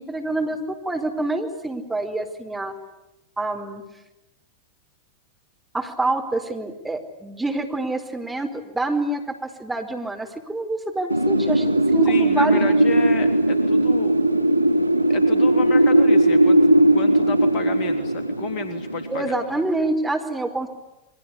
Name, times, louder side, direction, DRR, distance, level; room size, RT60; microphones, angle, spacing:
voice 1, 0.0-2.7 3.4-3.8 5.7-12.6 19.1-20.7, right 2 dB, 5° right, 2 dB, 4.6 m, -26 dB
Wind, 11.1-19.8, right 1 dB, 90° left, 3.2 m, -18 dB
voice 2, 12.0-14.1 15.1-16.6 16.9-19.4, left 5 dB, 40° left, 8 dB, 3.2 m, -31 dB
29.0 x 23.5 x 8.5 m, 0.94 s
figure-of-eight pair, 90°, 0 cm